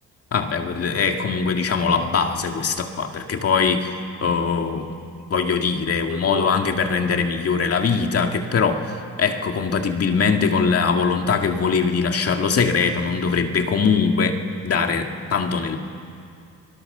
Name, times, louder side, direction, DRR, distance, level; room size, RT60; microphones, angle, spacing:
voice 1, 0.3-3.9 4.2-4.9 5.3-15.8, left 5 dB, 50° left, 4 dB, 2.3 m, -22 dB
29.5 x 22.0 x 6.8 m, 2.4 s
cardioid pair, 90°, 30 cm